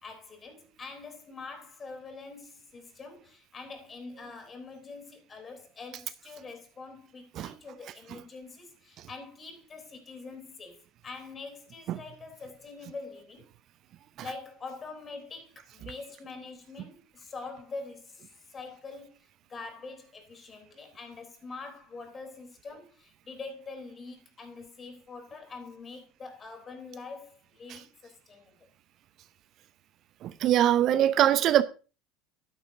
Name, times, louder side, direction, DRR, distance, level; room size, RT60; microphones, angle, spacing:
voice 1, 0.0-13.5 14.2-28.6, left 4 dB, 30° left, 3.4 m, -44 dB
voice 2, 30.2-31.6, right 11 dB, 50° right, 0.5 m, -23 dB
12.0 x 11.0 x 2.7 m
hypercardioid pair, 70°, 0 cm